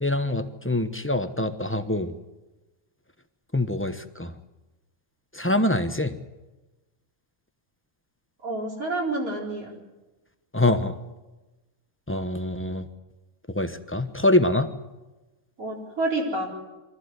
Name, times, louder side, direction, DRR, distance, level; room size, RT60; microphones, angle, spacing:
voice 1, 0.0-2.1 3.5-4.3 5.3-6.2 10.5-11.0 12.1-12.9 13.5-14.7, left 1 dB, 10° left, 9 dB, 0.9 m, -24 dB
voice 2, 8.4-9.7 15.6-16.5, right 2 dB, 75° right, -2 dB, 4.7 m, -28 dB
24.0 x 14.5 x 9.7 m, 1.1 s
omnidirectional pair, 1.5 m